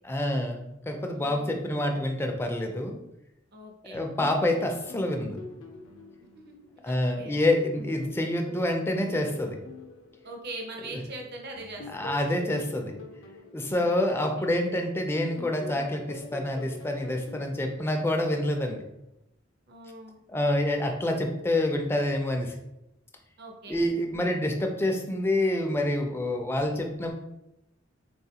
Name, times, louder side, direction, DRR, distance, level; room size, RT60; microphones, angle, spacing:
voice 1, 0.0-3.0 3.9-5.4 6.8-9.6 10.9-11.0 11.9-12.9 13.5-18.8 20.3-22.5 23.7-27.1, left 1 dB, 10° left, 3 dB, 0.4 m, -27 dB
voice 2, 1.1-1.6 3.5-4.0 6.3-6.5 6.9-7.4 10.2-11.9 13.8-14.5 19.7-20.2 23.4-23.8 24.1-24.5, right 2 dB, 55° right, 1 dB, 0.6 m, -42 dB
sound 1, 3.9-7.3 7.7-11.0 11.6-14.9 15.4-18.6, left 2 dB, 75° left, 0.5 m, -45 dB
3.5 x 2.3 x 2.8 m, 0.86 s
head